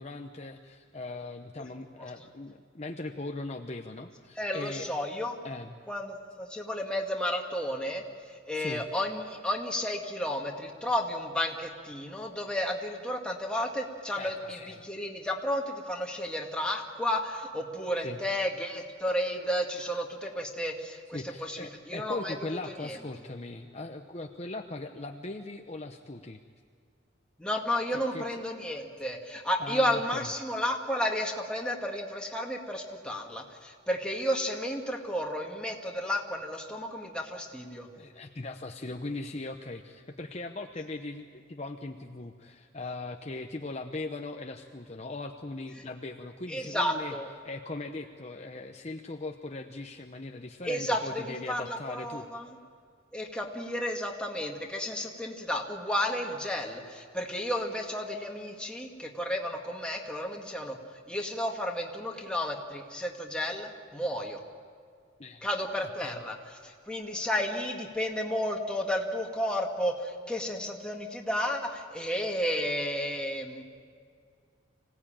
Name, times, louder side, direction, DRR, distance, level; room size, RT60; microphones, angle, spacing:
voice 1, 0.0-4.9 5.4-5.8 8.5-8.8 14.2-14.7 18.0-18.2 21.1-26.4 27.9-28.4 29.6-30.3 37.9-47.1 47.4-52.3 65.2-65.5 65.8-66.2, left 2 dB, 35° left, 4 dB, 0.9 m, -39 dB
voice 2, 4.4-5.4 5.9-8.0 8.5-22.3 22.8-23.0 27.4-37.9 46.5-47.3 50.6-52.6 53.1-60.8 61.1-64.4 65.4-73.6, equal, 5° left, 0 dB, 2.1 m, -32 dB
25.5 x 17.5 x 8.9 m, 2.2 s
head